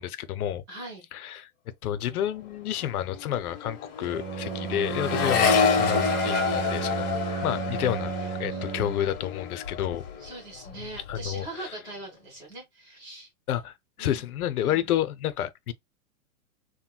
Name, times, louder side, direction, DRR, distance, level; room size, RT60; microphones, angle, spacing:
voice 1, 0.0-0.6 1.1-1.5 1.8-8.1 8.4-10.0 11.1-11.7 13.5-15.7, left 11 dB, 85° left, 0.7 m, -30 dB
voice 2, 0.7-1.1 4.5-4.7 7.5-7.7 8.5-8.7 10.2-13.3 14.0-14.2 14.6-14.8, right 2 dB, 10° right, 1.1 m, -42 dB
Accelerating revving vroom, 2.3-2.5 2.8-10.3 10.6-11.2, left 6 dB, 55° left, 1.4 m, -28 dB
Bowed string instrument, 4.1-9.2, right 8 dB, 75° right, 0.7 m, -33 dB
3.7 x 2.2 x 2.2 m
supercardioid pair, 165°, 43 cm